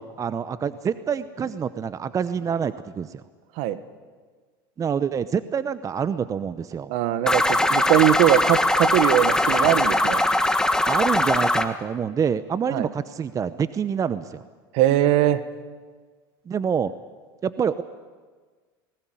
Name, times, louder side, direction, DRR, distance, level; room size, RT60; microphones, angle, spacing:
voice 1, 0.0-3.2 4.8-6.9 9.6-9.8 10.9-14.4 16.5-16.9 17.4-17.8, right 7 dB, 25° right, 14 dB, 0.8 m, -26 dB
voice 2, 6.9-10.2 12.7-12.9 14.7-15.4, right 13 dB, 60° right, 12 dB, 1.5 m, -21 dB
sound 1, 7.3-11.7, left 1 dB, 5° left, 1.5 m, -21 dB
19.5 x 19.5 x 9.1 m, 1.5 s
hypercardioid pair, 95°, 12 cm